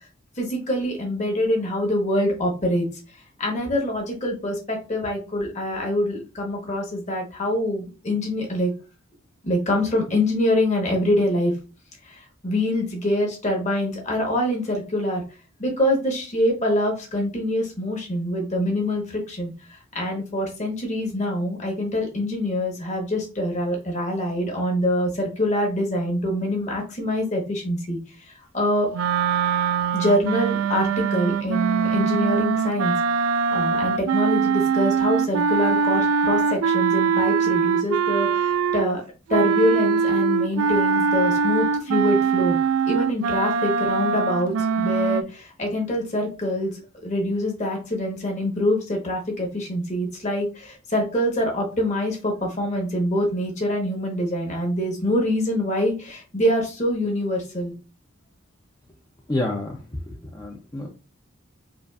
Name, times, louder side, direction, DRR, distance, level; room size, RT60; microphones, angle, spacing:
voice 1, 0.4-2.9 3.4-8.7 9.4-11.5 12.1-15.2 15.6-28.9 29.9-32.9 33.5-39.0 39.3-42.6 42.9-57.7, left 1 dB, 35° left, 1 dB, 1.1 m, -25 dB
sound 1, 28.9-39.0 39.3-45.2, right 5 dB, 85° right, 0.3 m, -22 dB
voice 2, 59.3-59.7 60.1-60.9, left 1 dB, 20° left, -1 dB, 0.5 m, -28 dB
5.0 x 2.5 x 2.4 m, 0.33 s
head